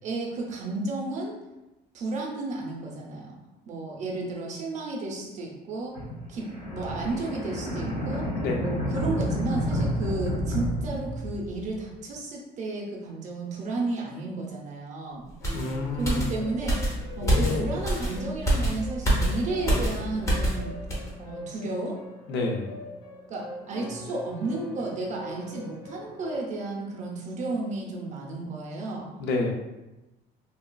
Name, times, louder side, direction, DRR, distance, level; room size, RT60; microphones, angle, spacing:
voice 1, 0.0-1.3 1.9-3.4 3.7-6.0 6.3-8.3 8.6-15.3 15.9-20.8 21.2-22.0 23.3-29.1, right 2 dB, 40° right, -1 dB, 0.6 m, -33 dB
sound 1, 5.9-11.8, equal, 50° left, 1.2 m, -30 dB
sound 2, 15.4-26.4, left 1 dB, 85° left, 0.9 m, -42 dB
sound 3, 15.4-20.6 20.9-21.1, right 1 dB, 15° left, 0.6 m, -26 dB
voice 2, 15.5-16.3 17.2-17.7 22.3-22.7 29.2-29.5, left 3 dB, 65° left, 1 dB, 0.5 m, -28 dB
3.2 x 2.3 x 2.2 m, 1.0 s
cardioid pair, 155°, 19 cm